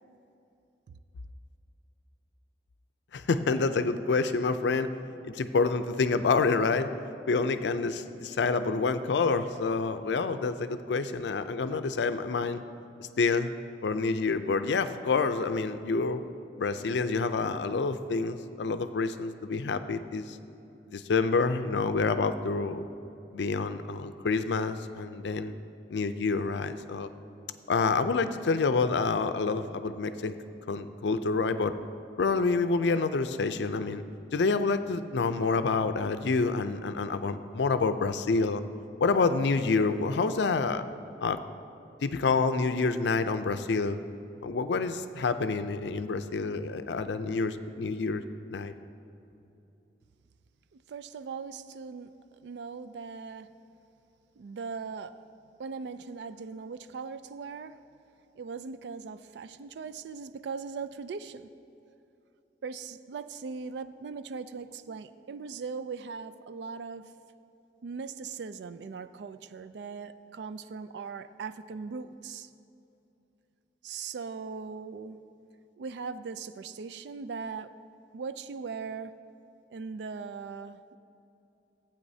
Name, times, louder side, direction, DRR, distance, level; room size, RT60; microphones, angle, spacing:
voice 1, 3.1-4.9 5.2-6.9 7.3-12.6 13.2-13.5 13.8-16.2 16.6-20.4 20.9-22.9 23.3-25.5 25.9-27.1 27.7-30.3 30.7-31.7 32.2-34.0 34.3-38.6 39.0-40.8 41.2-41.4 42.0-44.0 44.4-48.2 48.5-48.7, left 4 dB, 80° left, 10 dB, 0.4 m, -28 dB
voice 2, 50.7-52.1 52.4-53.5 54.4-55.2 55.6-57.8 58.4-61.5 62.6-67.1 67.8-72.5 73.8-75.2 75.8-77.7 78.1-79.2 79.7-81.0, right 5 dB, 75° right, 13 dB, 0.4 m, -39 dB
15.5 x 8.6 x 2.7 m, 2.8 s
head